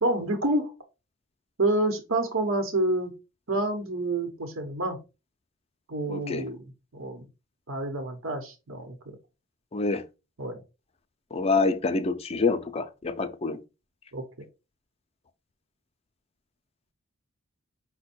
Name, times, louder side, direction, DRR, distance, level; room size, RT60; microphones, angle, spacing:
voice 1, 0.0-0.7 1.6-3.1 3.5-5.0 5.9-6.6 6.9-7.2 7.7-9.0 10.4-10.6 14.1-14.2, right 2 dB, 80° right, 1.0 m, -28 dB
voice 2, 6.1-6.4 9.7-10.0 11.3-13.6, left 3 dB, 30° left, 0.5 m, -26 dB
5.3 x 2.2 x 4.2 m
head